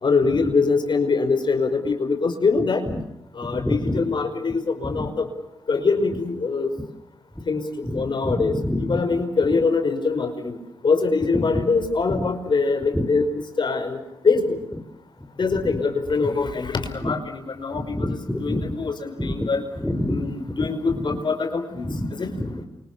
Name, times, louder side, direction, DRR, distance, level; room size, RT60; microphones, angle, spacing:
voice 1, 0.0-2.8 3.4-5.3 5.7-6.7 7.5-7.7 7.9-8.5 8.9-10.6 10.8-13.3 13.6-14.0 14.2-14.6 15.4-18.1 18.3-19.6 20.1-21.9 22.2-22.3, left 4 dB, 55° left, 6 dB, 5.6 m, -23 dB
voice 2, 3.5-4.0 4.8-5.1 7.8-9.0 11.5-11.6 12.2-12.3 12.9-13.0 15.5-15.8 17.0-17.1 17.7-18.8 19.2-19.5 19.8-20.3 20.9-21.2 21.8-22.6, left 1 dB, 5° left, 6 dB, 4.8 m, -28 dB
29.0 x 26.0 x 7.1 m, 0.83 s
supercardioid pair, 45°, 10 cm